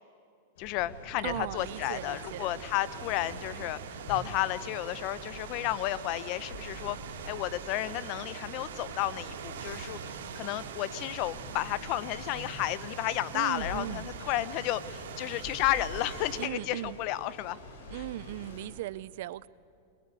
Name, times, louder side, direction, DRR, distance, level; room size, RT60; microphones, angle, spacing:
sound 1, 0.6-18.7, left 1 dB, 70° left, 6.6 m, -47 dB
voice 1, 0.6-3.8 4.1-7.0 7.3-17.6, left 15 dB, 45° left, 17 dB, 0.7 m, -32 dB
voice 2, 1.2-2.6 13.3-14.1 16.4-17.0 17.9-19.5, right 14 dB, 60° right, 19 dB, 0.5 m, -38 dB
sound 2, 1.6-16.5, right 7 dB, 80° right, 2.5 m, -43 dB
22.0 x 20.5 x 8.3 m, 2.4 s
supercardioid pair, 145°, 0 cm